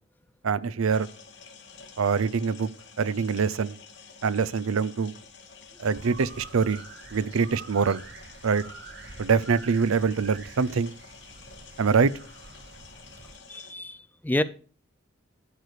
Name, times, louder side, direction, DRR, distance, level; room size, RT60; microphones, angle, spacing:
voice 1, 0.4-1.1 2.0-2.7 3.0-3.8 4.2-5.1 5.8-6.8 7.1-8.0 8.4-8.6 9.2-10.9 11.8-12.1, right 5 dB, 85° right, 0.5 m, -24 dB
sound 1, 0.9-13.7, left 5 dB, 55° left, 2.0 m, -50 dB
sound 2, 5.9-13.4, right 4 dB, 55° right, 1.0 m, -47 dB
voice 2, 13.5-14.4, left 1 dB, 10° left, 0.4 m, -28 dB
12.0 x 4.9 x 6.6 m
head